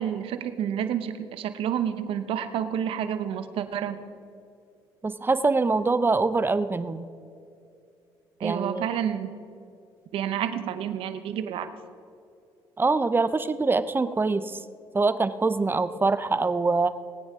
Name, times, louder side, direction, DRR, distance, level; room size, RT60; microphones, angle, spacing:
voice 1, 0.0-4.0 8.4-9.3 10.1-11.7, right 9 dB, 75° right, 10 dB, 0.9 m, -29 dB
voice 2, 5.0-7.1 8.4-8.9 12.8-14.6 14.9-16.9, right 3 dB, 20° right, 12 dB, 0.6 m, -24 dB
20.0 x 9.2 x 3.7 m, 2.5 s
cardioid pair, 80°, 10 cm